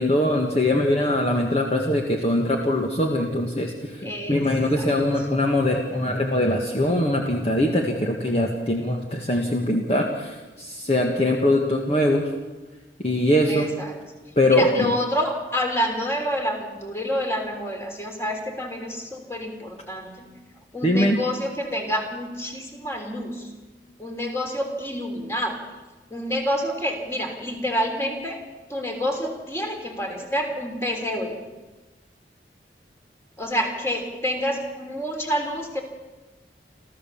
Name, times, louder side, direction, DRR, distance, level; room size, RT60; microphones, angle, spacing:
voice 1, 0.0-12.3 13.0-13.7 14.4-14.9 20.8-21.2, left 1 dB, 35° left, 1 dB, 1.7 m, -22 dB
voice 2, 4.0-4.4 4.7-4.9 13.5-13.9 14.5-20.3 20.7-23.5 24.0-25.6 26.1-28.4 28.7-31.4 33.4-35.8, equal, 15° left, 3 dB, 3.4 m, -28 dB
28.5 x 14.0 x 7.2 m, 1.2 s
head